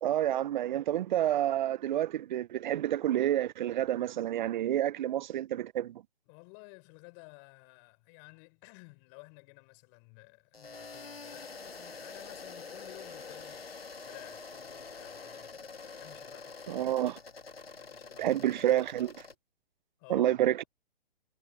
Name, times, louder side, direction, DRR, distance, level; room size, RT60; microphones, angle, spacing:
voice 1, 0.0-6.0 16.7-17.2 18.2-19.3 20.1-20.6, right 12 dB, 55° right, 0.5 m, -29 dB
voice 2, 6.3-16.9 17.8-18.4 20.0-20.3, left 40 dB or more, 35° left, 6.1 m, -54 dB
sound 1, 10.5-19.3, left 4 dB, 90° left, 2.3 m, -46 dB
hypercardioid pair, 130°, 29 cm